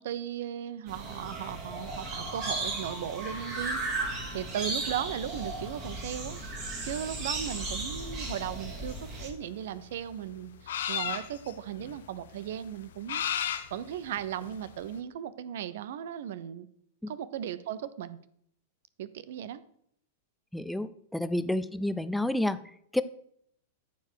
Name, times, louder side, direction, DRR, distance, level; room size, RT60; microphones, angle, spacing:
voice 1, 0.0-3.8 4.3-6.4 6.8-13.2 13.5-16.7 17.1-18.2 19.0-19.6 21.5-21.6, right 10 dB, 60° right, 16 dB, 0.6 m, -37 dB
sound 1, 0.9-9.3, right 2 dB, 40° right, 2.9 m, -35 dB
sound 2, 7.6-14.9, left 9 dB, 65° left, 0.8 m, -36 dB
voice 2, 20.5-23.0, left 1 dB, 5° left, 12 dB, 0.5 m, -30 dB
13.5 x 4.7 x 4.8 m, 0.68 s
figure-of-eight pair, 95°, 0 cm